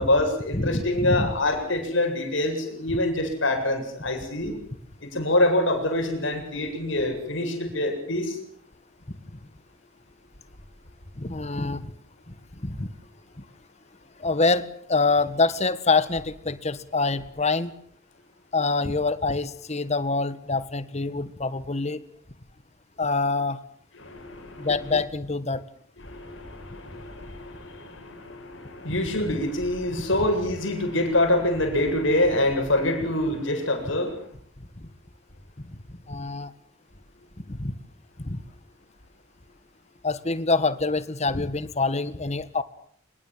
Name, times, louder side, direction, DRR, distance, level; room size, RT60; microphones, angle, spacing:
voice 1, 0.0-4.6 5.0-8.4 24.0-24.7 26.0-34.2, left 1 dB, 65° left, 5 dB, 8.0 m, -25 dB
voice 2, 0.5-1.3 11.1-11.9 12.6-12.9 14.2-17.7 18.5-22.0 23.0-23.6 24.6-25.6 28.9-29.0 34.8-34.9 36.1-36.5 37.5-37.7 38.2-38.4 40.0-42.6, left 3 dB, 35° left, 14 dB, 1.6 m, -25 dB
25.5 x 22.0 x 7.7 m, 0.63 s
head